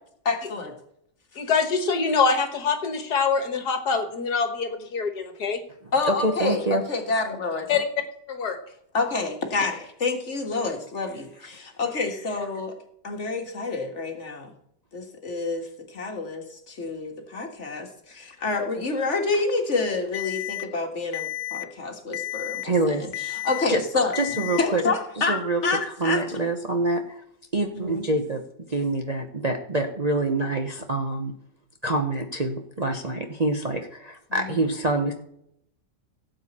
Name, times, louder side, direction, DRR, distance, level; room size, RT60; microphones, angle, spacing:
voice 1, 0.3-0.7 5.9-7.7 8.9-12.8 13.0-14.5 14.9-23.0 23.4-24.2 24.6-26.2 27.7-28.0, left 3 dB, 45° left, 3 dB, 1.9 m, -28 dB
voice 2, 1.4-5.6 7.7-7.8 8.3-8.6, left 5 dB, 70° left, 7 dB, 1.8 m, -24 dB
voice 3, 5.8-6.8 22.6-23.4 23.7-23.8 24.1-24.8 25.2-25.6 26.0-27.2 27.5-28.4 28.7-31.3 31.8-35.1, right 2 dB, 30° right, 3 dB, 0.9 m, -26 dB
Alarm, 20.1-20.6 21.1-21.6 22.1-22.6 23.1-23.6 24.1-24.6, left 14 dB, 85° left, 1.3 m, -32 dB
17.0 x 8.0 x 4.3 m, 0.74 s
omnidirectional pair, 1.8 m